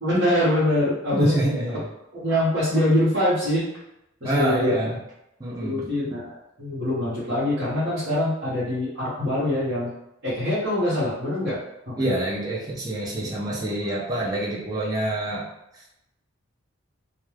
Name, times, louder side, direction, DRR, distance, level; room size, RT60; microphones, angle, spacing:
voice 1, 0.0-1.4 2.1-3.7 4.2-4.7 5.6-9.9 10.2-11.6 11.9-12.0, left 1 dB, 55° right, -12 dB, 0.9 m, -24 dB
voice 2, 1.1-1.9 4.2-5.0 5.4-5.9 12.0-15.5, right 1 dB, 20° right, -5 dB, 0.5 m, -26 dB
2.3 x 2.3 x 3.1 m, 0.84 s
head